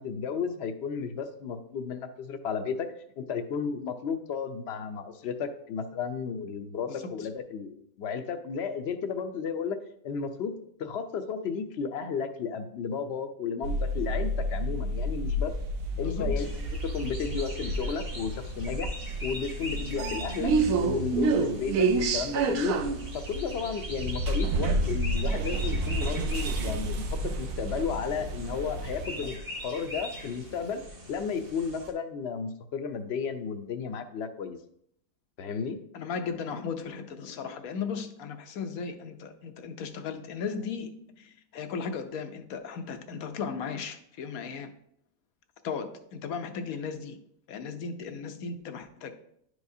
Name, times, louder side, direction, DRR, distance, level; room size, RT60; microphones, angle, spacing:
voice 1, 0.0-9.8 10.0-10.5 10.8-15.5 16.0-16.6 16.9-18.9 19.2-20.5 20.8-22.8 23.1-29.4 29.6-30.8 31.1-34.6 35.4-35.8, left 6 dB, 60° left, 8 dB, 0.8 m, -33 dB
voice 2, 6.9-7.3 16.0-16.5 35.9-44.7 45.6-47.2 47.5-49.1, left 5 dB, 80° left, 7 dB, 1.2 m, -36 dB
sound 1, 13.6-29.3, right 2 dB, 75° right, 1.0 m, -30 dB
sound 2, 16.4-31.9, equal, 45° right, 1.4 m, -41 dB
11.0 x 4.8 x 2.7 m, 0.71 s
omnidirectional pair, 1.5 m